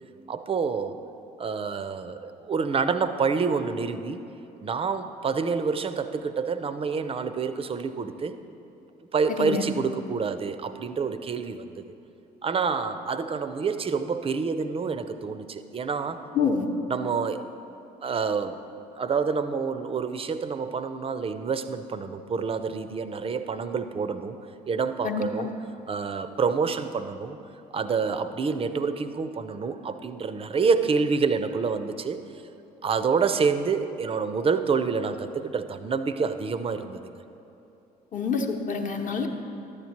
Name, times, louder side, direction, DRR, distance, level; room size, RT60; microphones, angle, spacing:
voice 1, 0.3-1.0 1.4-4.2 4.6-8.3 9.1-11.8 12.4-16.2 16.9-17.5 18.0-18.6 19.0-24.4 24.7-25.5 25.9-27.4 27.7-32.2 32.8-37.2, right 5 dB, 25° right, 11 dB, 0.5 m, -27 dB
voice 2, 9.4-9.7 16.3-16.7 25.0-25.5 38.1-39.3, left 5 dB, 40° left, 3 dB, 0.9 m, -27 dB
12.0 x 8.1 x 2.9 m, 2.9 s
hypercardioid pair, 55°, 21 cm